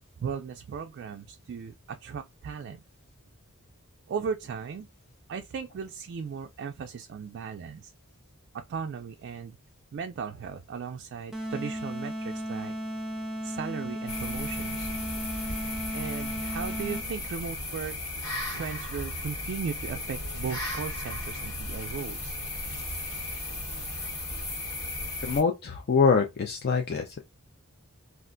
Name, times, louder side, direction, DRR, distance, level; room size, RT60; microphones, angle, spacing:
voice 1, 0.2-2.8 4.1-4.9 5.3-7.9 8.5-9.6 9.9-12.7 13.4-14.9 15.9-18.0 18.5-22.4, right 6 dB, 55° right, 0.3 m, -37 dB
sound 1, 11.3-17.3, equal, ahead, 0.5 m, -35 dB
sound 2, 14.1-25.4, left 1 dB, 80° left, 1.4 m, -35 dB
voice 2, 25.2-27.2, left 5 dB, 50° left, 0.4 m, -24 dB
2.4 x 2.2 x 3.7 m
head